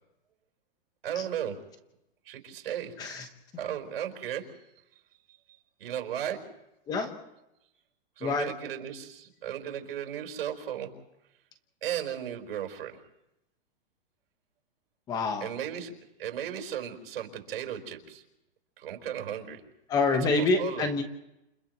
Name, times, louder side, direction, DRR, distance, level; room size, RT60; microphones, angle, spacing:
voice 1, 1.0-1.6 2.3-2.9 3.6-4.5 5.8-6.4 8.2-10.9 11.8-13.0 15.4-15.9 16.2-18.2 18.8-19.6 20.1-20.9, right 9 dB, 80° right, 3 dB, 4.3 m, -35 dB
voice 2, 8.2-8.5 15.1-15.5 19.9-21.0, left 3 dB, 15° left, 7 dB, 1.1 m, -26 dB
30.0 x 29.0 x 3.1 m, 0.89 s
supercardioid pair, 175°, 29 cm